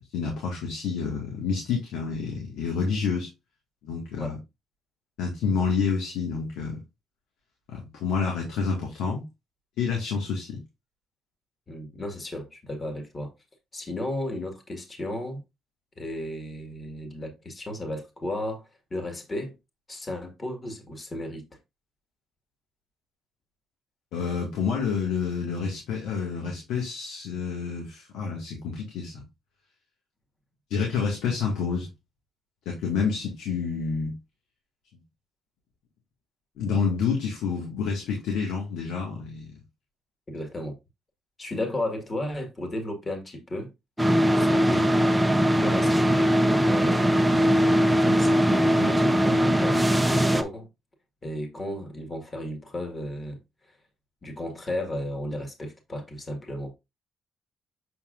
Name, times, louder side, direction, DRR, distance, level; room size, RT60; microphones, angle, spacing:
voice 1, 0.1-3.3 3.8-4.4 5.2-6.8 7.7-9.2 9.8-10.6 24.1-29.2 30.7-31.9 32.7-34.2 36.6-39.6, left 5 dB, 90° left, 1.8 m, -28 dB
voice 2, 11.7-13.3 13.7-15.4 16.0-18.6 18.9-19.6 19.9-21.4 40.3-40.8 41.4-43.7 44.4-44.9 45.6-46.4 46.6-50.7 51.2-53.4 54.2-56.7, left 1 dB, 30° left, 1.8 m, -34 dB
sound 1, 44.0-50.4, equal, 5° right, 0.7 m, -21 dB
7.0 x 5.6 x 2.5 m
cardioid pair, 90°, 0 cm